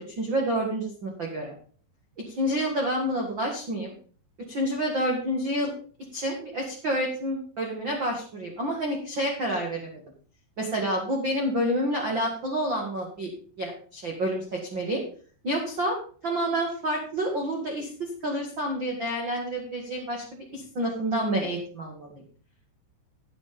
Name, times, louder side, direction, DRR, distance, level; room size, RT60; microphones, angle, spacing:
voice 1, 0.0-1.5 2.3-3.9 4.5-5.7 6.1-10.0 10.6-13.3 13.6-15.0 15.4-16.0 16.2-22.2, right 1 dB, 55° right, 0 dB, 1.3 m, -29 dB
10.5 x 9.0 x 5.2 m, 0.43 s
omnidirectional pair, 5.5 m